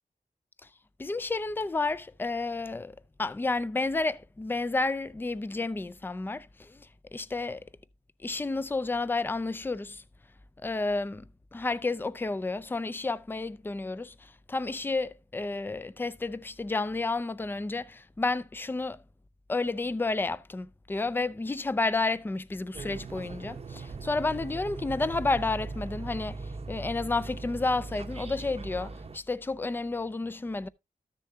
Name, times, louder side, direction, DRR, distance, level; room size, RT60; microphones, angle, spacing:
voice 1, 1.0-6.9 7.1-7.6 8.2-10.0 10.6-19.0 19.5-30.7, left 3 dB, 15° left, 0.4 m, -31 dB
sound 1, 22.7-29.2, right 3 dB, 45° right, 0.8 m, -39 dB
13.5 x 6.8 x 2.7 m
wide cardioid pair, 135°, 15 cm